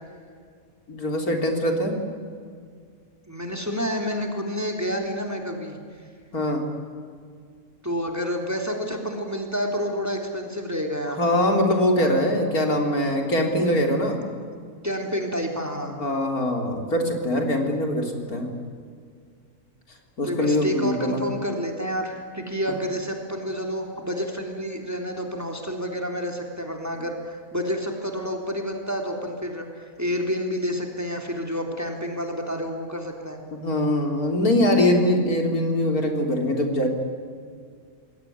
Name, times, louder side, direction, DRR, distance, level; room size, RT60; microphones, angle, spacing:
voice 1, 0.9-2.0 6.3-6.7 11.2-14.2 16.0-18.5 20.2-21.2 33.5-36.9, left 1 dB, 75° left, 3 dB, 4.0 m, -22 dB
voice 2, 3.3-5.8 7.8-11.2 12.0-12.1 14.8-16.0 20.2-33.4, equal, 10° right, 2 dB, 3.6 m, -29 dB
28.0 x 21.5 x 9.6 m, 2.1 s
omnidirectional pair, 1.6 m